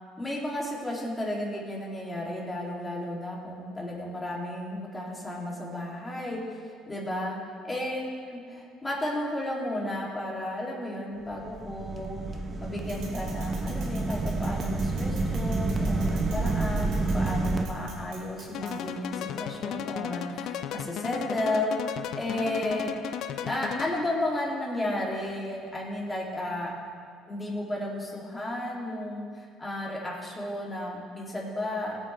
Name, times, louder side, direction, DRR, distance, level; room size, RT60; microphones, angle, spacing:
voice 1, 0.2-7.4 7.6-12.3 12.6-21.8 22.2-22.9 23.4-26.7 27.3-32.0, left 1 dB, 15° left, -3 dB, 2.8 m, -33 dB
sound 1, 11.3-17.7, right 3 dB, 25° right, 0.9 m, -29 dB
sound 2, 12.8-18.9, right 3 dB, 70° right, 3.1 m, -49 dB
sound 3, 18.5-24.2, left 9 dB, 65° left, 0.5 m, -35 dB
17.0 x 8.3 x 3.4 m, 2.2 s
supercardioid pair, 100°, 0 cm